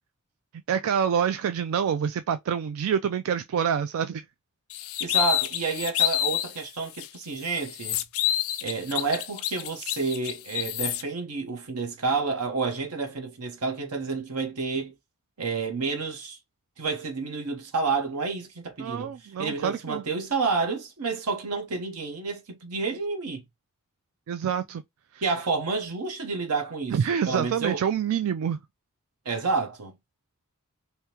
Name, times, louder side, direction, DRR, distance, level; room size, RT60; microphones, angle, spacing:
voice 1, 0.7-4.2 18.8-20.0 24.3-24.8 25.1-25.2 26.9-28.6, right 8 dB, 65° right, 0.3 m, -27 dB
sound 1, 4.7-6.5 7.0-7.1 7.4-11.0, left 12 dB, 65° left, 0.4 m, -28 dB
voice 2, 5.0-8.0 8.6-14.9 15.4-16.4 16.8-23.4 25.2-27.8 29.2-29.9, right 4 dB, 85° right, 0.9 m, -30 dB
3.5 x 2.7 x 2.8 m
head